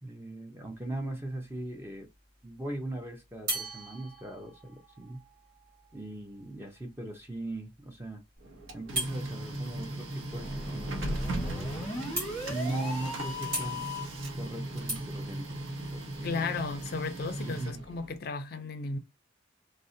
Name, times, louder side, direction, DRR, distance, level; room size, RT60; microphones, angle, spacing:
voice 1, 0.0-2.1 2.4-5.2 5.9-8.2 8.7-11.8 12.5-13.8 14.4-15.6 15.9-16.5 17.4-17.8, right 1 dB, 10° right, 0.5 m, -39 dB
sound 1, 0.7-1.2 3.5-7.1 8.9-9.2 11.1-11.2 11.6-11.7 12.1-12.7 13.5-16.2, right 1 dB, 50° right, 1.6 m, -39 dB
Printer, 8.4-18.2, right 1 dB, 80° right, 0.7 m, -38 dB
sound 2, 10.3-14.2, left 1 dB, 10° left, 0.9 m, -38 dB
voice 2, 16.2-19.0, left 4 dB, 50° left, 0.4 m, -34 dB
2.6 x 2.0 x 2.5 m
head